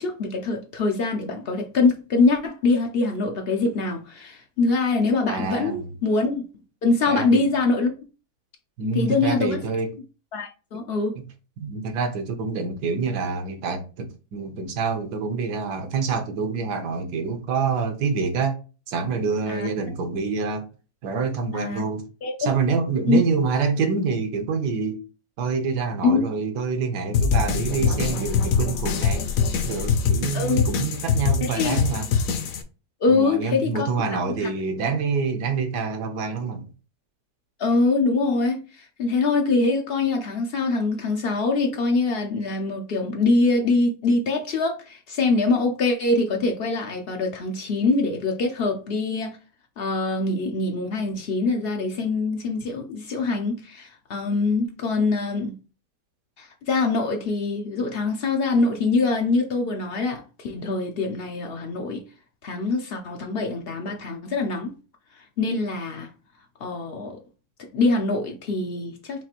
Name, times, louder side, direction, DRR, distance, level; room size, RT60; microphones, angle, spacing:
voice 1, 0.0-6.4 6.8-7.9 8.9-9.6 10.3-11.2 19.5-19.7 21.5-21.8 22.2-22.5 23.1-23.2 26.0-26.2 30.3-30.6 31.4-31.8 33.0-34.5 37.6-49.4 49.8-55.5 56.4-62.0 62.4-64.7 65.2-66.1 66.6-67.2 67.7-69.2, left 3 dB, 90° left, 0.5 m, -24 dB
voice 2, 5.3-5.9 7.1-7.4 8.8-9.9 11.6-18.6 18.9-20.7 21.0-22.0 22.4-25.0 25.4-29.3 29.6-32.1 33.1-36.7, right 5 dB, 80° right, 1.4 m, -26 dB
sound 1, 27.1-32.6, left 6 dB, 70° left, 0.9 m, -23 dB
5.9 x 2.4 x 2.9 m
omnidirectional pair, 1.8 m